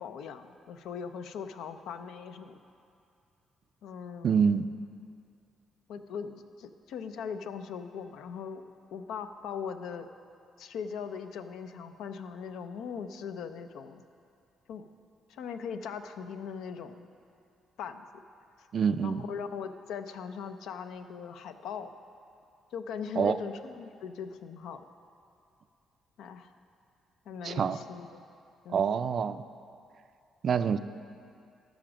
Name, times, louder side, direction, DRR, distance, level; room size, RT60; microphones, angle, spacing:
voice 1, 0.0-2.6 3.8-4.3 5.9-8.6 8.9-10.1 10.6-14.0 14.7-14.9 15.3-17.1 17.8-18.0 18.6-18.7 19.0-21.9 22.7-24.9 26.2-26.5 27.3-28.2 28.6-28.9, left 6 dB, 85° left, 9 dB, 0.5 m, -40 dB
voice 2, 4.2-4.7 18.7-19.2 23.2-23.4 27.4-27.8 28.7-29.4 30.4-30.8, right 6 dB, 55° right, 12 dB, 0.4 m, -26 dB
13.5 x 5.1 x 6.1 m, 2.5 s
cardioid pair, 90°, 0 cm